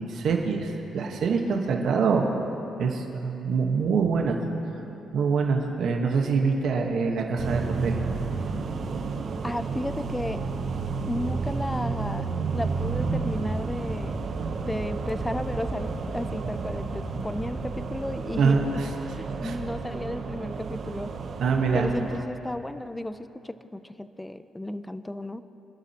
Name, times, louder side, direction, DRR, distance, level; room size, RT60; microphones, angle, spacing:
voice 1, 0.0-2.3 2.8-4.4 5.1-8.0 18.4-18.9 19.4-19.5 21.4-21.9, right 5 dB, 65° right, 2 dB, 1.2 m, -25 dB
sound 1, 7.4-22.2, right 4 dB, 50° right, 0.8 m, -32 dB
voice 2, 9.4-10.4 11.0-14.2 14.6-18.7 19.1-21.1 21.7-25.4, left 1 dB, 10° left, 12 dB, 0.4 m, -34 dB
sound 2, 12.9-17.9, right 2 dB, 5° right, 1.9 m, -36 dB
26.0 x 11.5 x 2.9 m, 3.0 s
cardioid pair, 120°, 0 cm